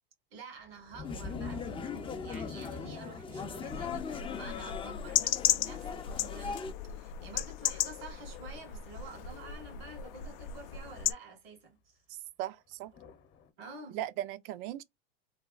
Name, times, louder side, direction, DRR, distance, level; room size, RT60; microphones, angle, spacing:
voice 1, 0.3-12.0 13.6-14.0, right 4 dB, 85° right, 1.7 m, -49 dB
sound 1, 0.7-6.4 12.9-13.5, left 3 dB, 40° left, 0.9 m, -46 dB
sound 2, 1.0-6.7, left 6 dB, 20° left, 0.4 m, -40 dB
sound 3, 3.7-11.1, left 12 dB, 70° left, 0.5 m, -35 dB
voice 2, 12.1-12.9 13.9-14.8, right 13 dB, 65° right, 0.5 m, -38 dB
3.3 x 2.2 x 2.4 m
supercardioid pair, 105°, 29 cm